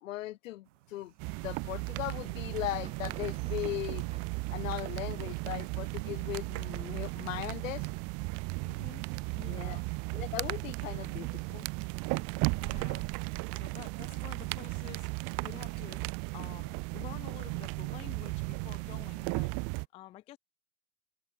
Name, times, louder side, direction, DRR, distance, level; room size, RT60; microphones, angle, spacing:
voice 1, 0.0-1.1 1.4-4.1 4.5-7.9 9.5-9.8 10.1-11.7, left 16 dB, 60° left, 1.4 m, -38 dB
sound 1, 0.6-19.8, right 20 dB, 55° right, 2.5 m, -58 dB
sound 2, 1.2-19.9, right 32 dB, 35° right, 0.7 m, -35 dB
Thunder, 2.7-12.2 12.4-13.1 13.4-14.4 14.8-16.5, right 7 dB, 15° right, 1.0 m, -57 dB
voice 2, 8.6-9.0 9.3-9.9 12.6-13.1 13.5-15.1 15.4-16.0 16.3-19.5 19.9-20.4, left 14 dB, 15° left, 0.4 m, -49 dB
hypercardioid pair, 105°, 43 cm